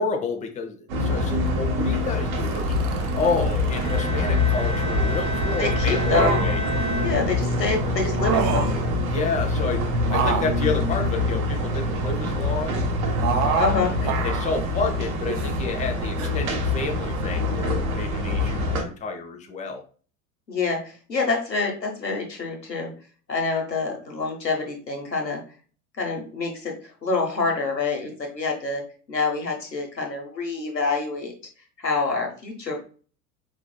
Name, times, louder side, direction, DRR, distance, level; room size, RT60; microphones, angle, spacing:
voice 1, 0.0-6.6 9.1-12.8 13.4-19.8, left 4 dB, 15° left, 4 dB, 0.7 m, -30 dB
sound 1, 0.9-18.8, left 2 dB, 55° right, 1.2 m, -25 dB
sound 2, 2.4-4.0 5.9-6.7 8.1-8.8 10.0-11.8 13.2-13.8 14.0-14.6 15.2-15.6 16.2-16.3, right 6 dB, 35° right, 0.7 m, -28 dB
Bowed string instrument, 3.8-7.8, right 2 dB, 80° right, 2.0 m, -32 dB
voice 2, 5.6-6.4 7.0-8.7 13.6-13.9 20.5-22.9 23.3-25.4 26.0-28.8 29.1-31.3 31.8-32.8, left 4 dB, 90° left, 1 dB, 1.2 m, -26 dB
5.0 x 3.3 x 2.2 m, 0.40 s
figure-of-eight pair, 80°, 49 cm